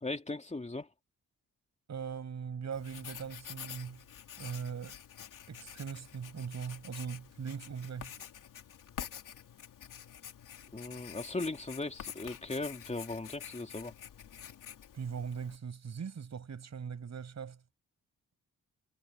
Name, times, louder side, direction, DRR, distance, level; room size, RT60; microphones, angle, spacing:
voice 1, 0.0-0.9 10.7-13.9, left 2 dB, 20° left, 3.2 m, -38 dB
voice 2, 1.9-4.0 4.4-5.0 5.5-8.1 14.9-17.6, right 6 dB, 55° right, 6.7 m, -40 dB
Writing, 2.7-15.6, left 9 dB, 80° left, 3.0 m, -48 dB
cardioid pair, 80°, 32 cm